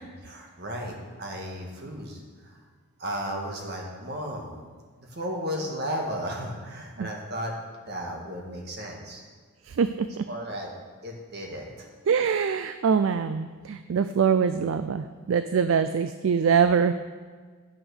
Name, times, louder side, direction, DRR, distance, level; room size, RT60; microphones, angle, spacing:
voice 1, 0.2-2.6 3.0-4.6 5.0-7.5 7.9-9.2 10.3-10.7 11.0-11.9, equal, 45° right, 0 dB, 1.7 m, -34 dB
voice 2, 9.6-10.2 12.1-16.9, right 6 dB, 65° right, 11 dB, 0.4 m, -24 dB
10.5 x 6.0 x 6.4 m, 1.5 s
head